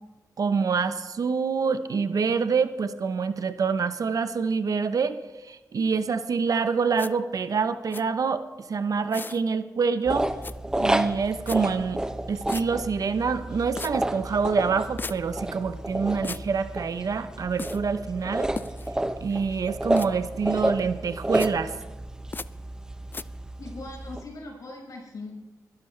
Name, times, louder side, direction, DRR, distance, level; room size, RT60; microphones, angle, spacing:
voice 1, 0.4-5.2 5.4-10.3 10.8-12.0 12.3-18.5 19.2-21.7, right 5 dB, 60° right, 11 dB, 0.8 m, -26 dB
sound 1, 7.0-7.1 7.9-8.0 9.1-9.4 10.4-10.5 11.5-11.6 12.5-12.6 13.8-13.9 15.0-15.2 16.2-16.4 17.6-17.8 18.6-18.9 20.0-20.1 21.3-21.5 22.3-22.5 23.1-23.2, left 4 dB, 30° left, 0.4 m, -35 dB
sound 2, 10.1-24.2, right 1 dB, 10° right, 0.6 m, -31 dB
voice 2, 23.6-25.3, left 2 dB, 60° left, -2 dB, 5.2 m, -40 dB
22.0 x 12.5 x 3.3 m, 1.1 s
wide cardioid pair, 90°, 7 cm